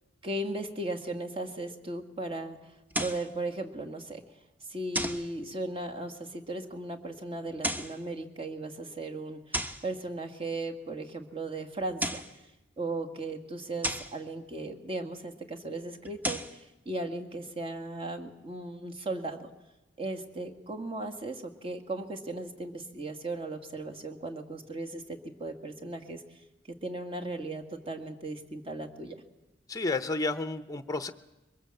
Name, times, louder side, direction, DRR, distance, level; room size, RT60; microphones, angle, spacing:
voice 1, 0.2-2.6 3.0-4.2 4.7-12.2 12.8-19.5 20.0-26.2 26.7-29.2, right 2 dB, 30° right, 4 dB, 1.8 m, -37 dB
sound 1, 2.9-3.3 4.9-5.3 7.5-8.0 9.5-9.9 11.8-12.4 13.8-14.2 16.0-16.6, equal, 10° right, 0.9 m, -33 dB
voice 2, 29.7-31.1, left 3 dB, 20° left, 10 dB, 0.7 m, -31 dB
22.5 x 21.0 x 7.7 m, 1.0 s
head